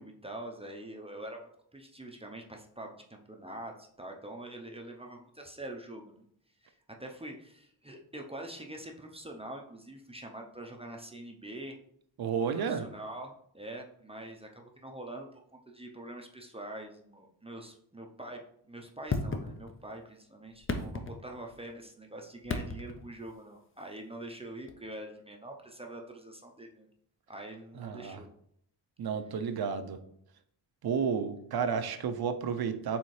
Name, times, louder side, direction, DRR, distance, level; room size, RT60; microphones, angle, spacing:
voice 1, 0.0-6.2 6.6-11.8 12.5-18.4 18.7-26.9 27.3-28.3, right 1 dB, 15° right, 1 dB, 0.6 m, -45 dB
voice 2, 12.2-12.9 27.8-28.2 29.0-30.0 30.8-33.0, right 6 dB, 60° right, 9 dB, 0.6 m, -31 dB
sound 1, 19.1-20.0 20.5-21.7 22.4-23.1 24.7-24.8, left 3 dB, 30° left, 0.6 m, -35 dB
4.2 x 3.4 x 3.2 m, 0.68 s
cardioid pair, 65°, 42 cm